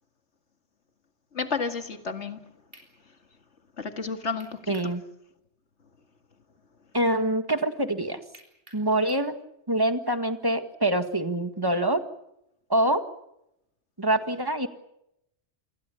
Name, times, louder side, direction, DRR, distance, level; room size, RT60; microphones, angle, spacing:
voice 1, 1.3-2.4 3.8-4.7, left 5 dB, 80° left, 7 dB, 2.4 m, -31 dB
sound 1, 2.7-2.9 4.4-5.0 5.3-5.4 8.3-9.3, right 1 dB, 55° right, 7.2 m, -51 dB
voice 2, 4.7-5.0 6.9-8.2 8.7-9.4 9.7-12.0 12.7-13.0 14.0-14.7, right 1 dB, 20° right, 8 dB, 1.8 m, -25 dB
28.5 x 21.5 x 7.1 m, 0.82 s
omnidirectional pair, 1.2 m